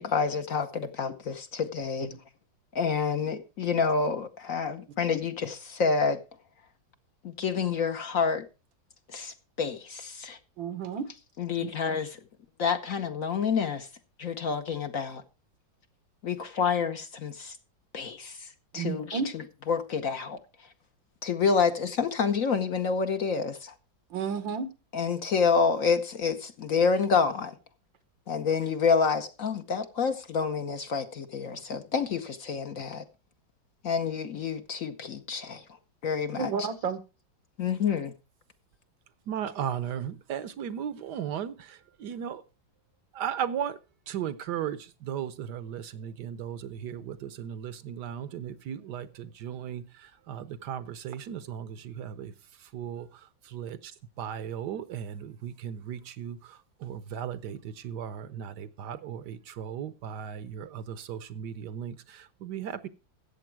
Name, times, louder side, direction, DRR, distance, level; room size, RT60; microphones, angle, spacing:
voice 1, 0.0-2.1 2.7-6.2 7.2-8.5 9.1-10.4 11.4-12.2 12.6-13.9 14.2-15.2 16.2-17.6 17.9-18.5 18.7-20.4 21.2-23.7 24.9-27.5 28.3-33.0 33.8-35.6 36.0-36.7 37.6-38.1, left 5 dB, 55° left, 1.1 m, -28 dB
voice 2, 10.6-11.1 18.8-19.3 24.1-24.7 36.4-37.0, right 6 dB, 85° right, 1.9 m, -31 dB
voice 3, 39.3-42.4 43.1-43.8 44.1-52.3 52.7-53.9 54.2-62.9, right 9 dB, 70° right, 1.3 m, -36 dB
14.0 x 8.1 x 4.5 m
omnidirectional pair, 2.0 m